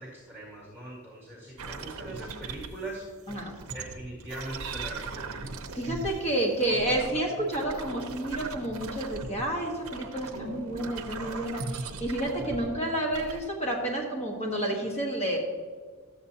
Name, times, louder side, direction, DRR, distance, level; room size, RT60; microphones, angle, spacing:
voice 1, 0.0-3.1 3.7-5.4, right 1 dB, 10° left, -7 dB, 2.0 m, -41 dB
sound 1, 1.6-2.9 3.3-6.2 6.6-9.5 9.8-12.8 13.1-13.4, right 3 dB, 65° right, 0.7 m, -39 dB
voice 2, 5.7-15.4, right 1 dB, 30° left, 0 dB, 1.3 m, -30 dB
13.0 x 7.8 x 2.8 m, 1.5 s
head